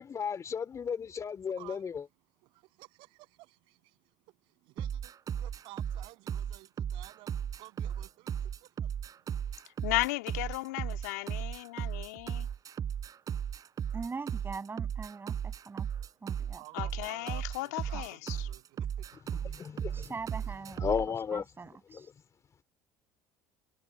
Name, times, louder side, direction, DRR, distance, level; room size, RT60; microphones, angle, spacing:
voice 1, 0.0-2.0 19.4-20.1 20.8-21.4 21.9-22.0, left 6 dB, 35° left, 3.3 m, -34 dB
voice 2, 1.6-1.9 2.4-3.9 4.6-7.3 7.6-8.9 16.6-19.1, right 24 dB, 70° right, 7.7 m, -53 dB
sound 1, 4.8-21.1, right 8 dB, 45° right, 5.5 m, -36 dB
voice 3, 9.8-12.5 16.7-18.5, left 20 dB, 80° left, 2.2 m, -35 dB
voice 4, 13.9-15.9 16.2-16.6 17.9-18.0 19.9-20.8 21.3-22.1, right 4 dB, 25° right, 7.6 m, -42 dB
hypercardioid pair, 70°, 9 cm